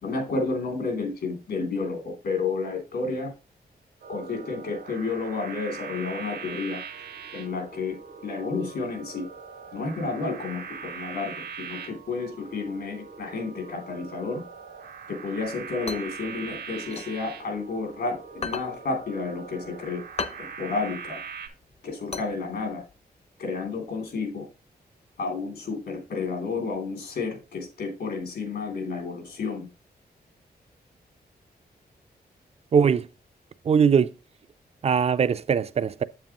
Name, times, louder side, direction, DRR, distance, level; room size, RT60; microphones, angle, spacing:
voice 1, 0.0-3.3 4.1-6.8 7.3-8.0 8.2-9.3 9.7-14.4 15.1-20.0 20.4-21.2 21.8-22.8 23.4-24.5 25.2-29.7, left 4 dB, 80° left, 2.8 m, -31 dB
sound 1, 4.0-21.5, right 6 dB, 85° right, 1.9 m, -41 dB
sound 2, 15.5-17.9 18.3-22.9, left 4 dB, 40° left, 0.6 m, -37 dB
voice 2, 32.7-33.1 33.7-34.1 34.8-36.0, right 6 dB, 40° right, 0.4 m, -21 dB
7.7 x 7.4 x 2.9 m
wide cardioid pair, 160°, 17 cm